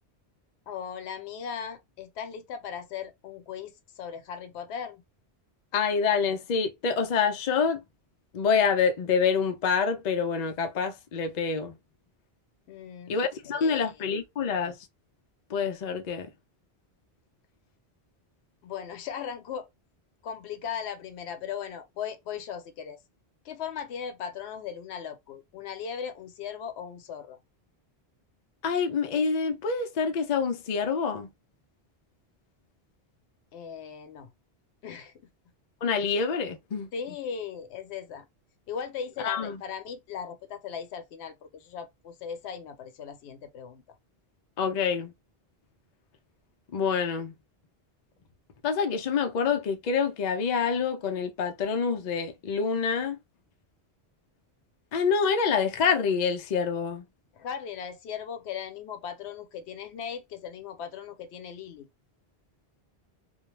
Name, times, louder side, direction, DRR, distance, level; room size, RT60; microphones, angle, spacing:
voice 1, 0.7-5.0 12.7-13.2 13.5-13.9 18.6-19.7 20.2-23.0 23.4-27.4 33.5-34.3 34.8-35.1 36.9-38.3 38.7-43.8 57.4-61.9, left 7 dB, 85° left, 0.9 m, -38 dB
voice 2, 5.7-7.8 8.3-11.8 13.1-14.9 15.5-16.3 28.6-31.3 35.8-36.9 39.2-39.6 44.6-45.1 46.7-47.3 48.6-53.2 54.9-57.0, left 6 dB, 55° left, 0.6 m, -27 dB
2.3 x 2.1 x 3.1 m
omnidirectional pair, 1.1 m